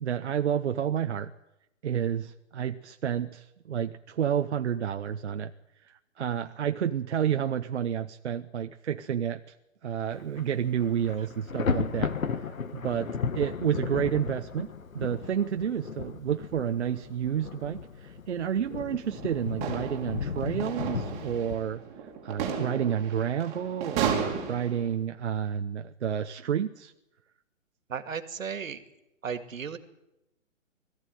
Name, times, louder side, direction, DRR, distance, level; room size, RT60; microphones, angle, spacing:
voice 1, 0.0-1.3 1.8-5.5 5.8-9.5 9.8-21.8 22.2-26.9, right 9 dB, 55° right, 7 dB, 1.0 m, -30 dB
Thunder, 10.1-10.4 10.7-21.6, left 5 dB, 85° left, 2.0 m, -35 dB
sound 1, 19.0-24.9, right 7 dB, 15° right, 2.8 m, -34 dB
voice 2, 27.9-28.8 29.2-29.8, right 6 dB, 80° right, 10 dB, 2.3 m, -35 dB
21.5 x 15.0 x 9.3 m, 0.91 s
hypercardioid pair, 165°, 40 cm